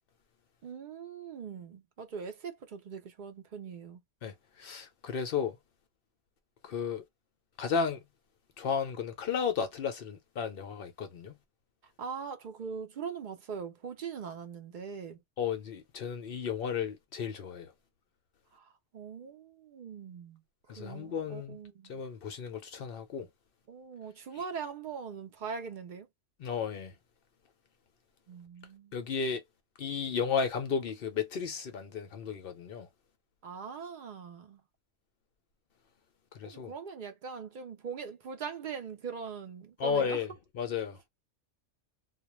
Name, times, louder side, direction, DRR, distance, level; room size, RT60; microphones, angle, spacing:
voice 1, 0.6-4.0 12.0-15.2 18.5-18.6 18.9-20.4 20.8-22.0 23.7-26.1 28.3-29.0 33.4-34.6 36.4-40.2, right 6 dB, 55° right, 0.5 m, -41 dB
voice 2, 4.2-5.6 6.6-7.0 7.6-8.0 8.6-11.3 15.4-17.7 20.7-21.6 21.9-23.3 26.4-26.9 28.9-29.4 29.8-32.9 36.3-36.7 39.8-41.0, left 6 dB, 60° left, 0.6 m, -33 dB
2.3 x 2.1 x 2.9 m
omnidirectional pair, 1.3 m